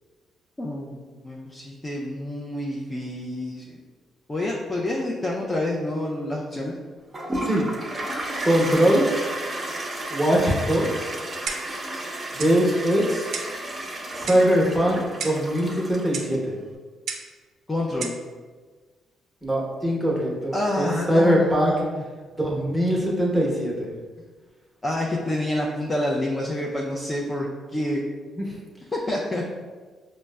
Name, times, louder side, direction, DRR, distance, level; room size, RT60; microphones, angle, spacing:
voice 1, 0.6-3.8 4.3-6.7 17.7-18.1 20.5-22.0 24.8-28.0 28.9-29.4, left 1 dB, 20° left, -3 dB, 0.4 m, -28 dB
Toilet flush, 7.1-16.4, right 1 dB, 25° right, 0.6 m, -33 dB
voice 2, 8.4-9.0 10.1-11.1 12.3-13.3 14.1-16.5 19.4-21.7 22.4-23.9 28.4-28.5, equal, 5° right, -4 dB, 0.9 m, -22 dB
Clock, 11.5-11.8 12.4-12.6 13.3-13.6 14.3-14.5 15.2-15.5 16.1-16.3 17.1-17.3 18.0-18.2, right 5 dB, 70° right, 0.4 m, -33 dB
5.1 x 2.0 x 2.2 m, 1.4 s
cardioid pair, 90°, 0 cm